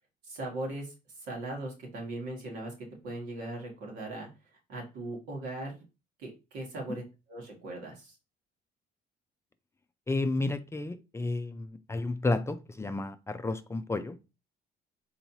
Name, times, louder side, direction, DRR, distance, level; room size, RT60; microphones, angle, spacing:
voice 1, 0.2-0.9 1.2-2.7 3.0-4.3 4.7-5.8 6.2-7.0 7.3-8.1, right 2 dB, 85° right, 2.0 m, -39 dB
voice 2, 10.1-14.2, left 2 dB, 15° left, 0.4 m, -31 dB
4.4 x 4.0 x 2.7 m
cardioid pair, 110°, 17 cm